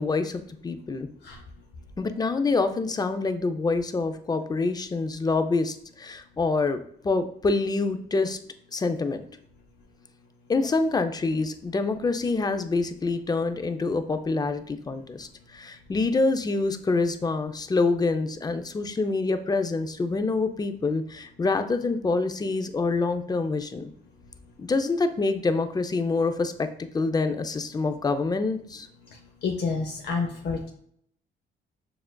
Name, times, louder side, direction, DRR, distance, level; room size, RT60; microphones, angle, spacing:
voice 1, 0.0-1.1 2.0-8.4 8.7-9.2 10.5-23.9 24.6-26.7 26.9-28.9, left 3 dB, 20° left, 8 dB, 0.4 m, -26 dB
voice 2, 29.4-30.7, left 4 dB, 60° left, 1 dB, 0.7 m, -29 dB
6.7 x 2.4 x 2.2 m, 0.67 s
cardioid pair, 90°, 20 cm